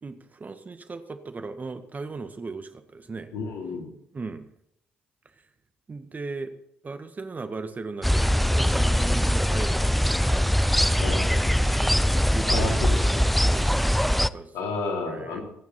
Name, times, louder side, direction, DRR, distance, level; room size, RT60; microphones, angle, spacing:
voice 1, 0.0-3.3 4.1-4.5 5.9-6.5 6.8-14.5 15.1-15.4, right 3 dB, 30° right, 9 dB, 1.7 m, -38 dB
voice 2, 3.3-3.9 11.0-11.3 12.5-13.3 14.5-15.4, left 3 dB, 70° left, 1 dB, 3.9 m, -31 dB
sound 1, 8.0-14.3, equal, ahead, 0.6 m, -22 dB
26.0 x 9.4 x 4.4 m, 0.72 s
hypercardioid pair, 50°, 5 cm